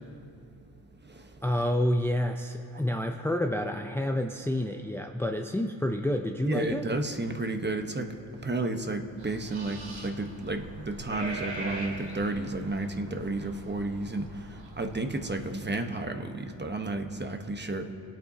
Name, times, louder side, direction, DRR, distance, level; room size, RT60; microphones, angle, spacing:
voice 1, 1.4-6.9, left 1 dB, 5° left, 4 dB, 0.6 m, -29 dB
voice 2, 6.5-8.1 8.4-17.9, right 2 dB, 25° right, 6 dB, 1.2 m, -32 dB
sound 1, 9.2-15.3, right 2 dB, 90° right, 2.8 m, -42 dB
21.0 x 8.9 x 2.9 m, 2.6 s
supercardioid pair, 50°, 45 cm